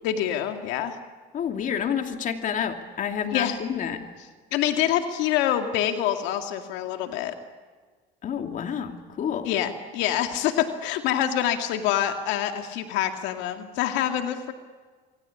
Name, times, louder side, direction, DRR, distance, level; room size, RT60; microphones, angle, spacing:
voice 1, 0.0-1.0 3.3-3.6 4.5-7.4 9.4-14.5, left 11 dB, 80° left, 6 dB, 2.1 m, -26 dB
voice 2, 1.3-4.1 8.2-9.5, left 8 dB, 45° left, 5 dB, 2.7 m, -29 dB
27.5 x 23.5 x 8.6 m, 1.5 s
cardioid pair, 115°, 19 cm